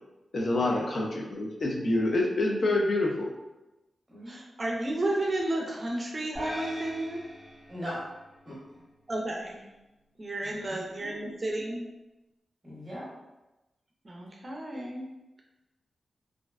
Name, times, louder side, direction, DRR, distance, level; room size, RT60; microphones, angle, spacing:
voice 1, 0.3-3.3, left 2 dB, 55° left, -1 dB, 0.5 m, -27 dB
voice 2, 4.3-7.2 9.1-9.7 10.2-11.8 14.0-15.1, right 1 dB, 35° right, 0 dB, 0.4 m, -32 dB
sound 1, 6.3-8.8, equal, 15° left, 0.8 m, -41 dB
voice 3, 7.7-8.0 8.5-8.6 10.4-11.2 12.6-13.0, equal, 15° right, -7 dB, 0.8 m, -40 dB
2.5 x 2.1 x 2.3 m, 1.0 s
wide cardioid pair, 110°, 0 cm